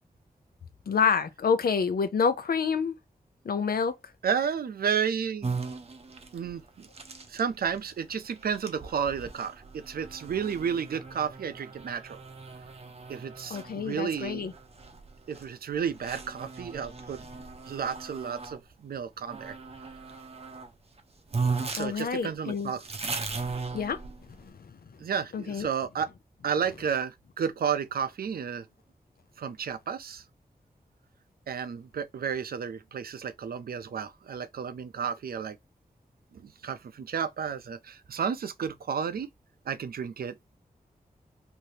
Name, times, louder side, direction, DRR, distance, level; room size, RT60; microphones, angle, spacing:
voice 1, 0.9-3.0 3.4-3.9 13.5-14.5 21.8-22.7 23.7-24.0 24.4-24.7 25.3-25.7, left 6 dB, 80° left, 0.5 m, -28 dB
voice 2, 4.2-5.6 6.3-6.9 7.3-12.2 13.1-14.4 15.3-17.2 17.7-19.6 21.7-22.8 23.5-23.6 25.0-26.1 26.4-28.6 29.4-30.2 31.5-35.6 36.3-39.3 39.7-40.6, right 7 dB, 90° right, 0.4 m, -32 dB
sound 1, 5.4-18.6 19.3-20.7 21.0-21.1 21.3-24.4, right 4 dB, 45° right, 0.6 m, -38 dB
2.7 x 2.6 x 3.1 m
wide cardioid pair, 85°, 15 cm